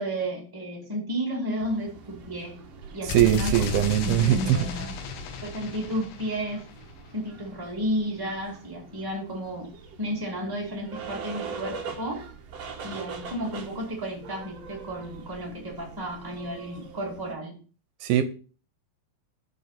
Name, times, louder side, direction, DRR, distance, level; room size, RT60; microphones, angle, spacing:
voice 1, 0.0-2.6 2.9-5.0 5.4-6.6 7.1-9.7 10.0-12.3 12.8-17.5, equal, 25° right, 0.4 m, -32 dB
sound 1, 1.6-17.3, right 5 dB, 60° right, 1.7 m, -43 dB
voice 2, 3.0-4.6 18.0-18.2, right 12 dB, 80° right, 2.6 m, -21 dB
sound 2, 3.1-6.9, left 3 dB, 75° left, 2.8 m, -33 dB
6.6 x 5.4 x 5.7 m
omnidirectional pair, 4.6 m